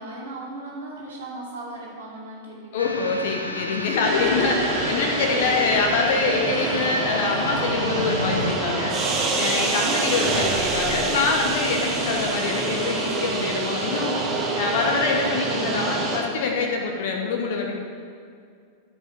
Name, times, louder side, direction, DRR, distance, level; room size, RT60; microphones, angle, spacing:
voice 1, 0.0-4.6 9.8-10.4, right 2 dB, 65° right, -4 dB, 2.5 m, -37 dB
voice 2, 2.7-9.0 9.3-14.2 14.5-17.7, left 4 dB, 55° left, 1 dB, 1.2 m, -25 dB
sound 1, 2.8-8.5, left 1 dB, 85° left, 0.7 m, -32 dB
sound 2, 4.0-16.2, right 3 dB, 35° right, 1.6 m, -26 dB
sound 3, 4.2-9.3, right 2 dB, 15° right, 1.0 m, -40 dB
14.0 x 5.4 x 4.6 m, 2.3 s
figure-of-eight pair, 90°, 0 cm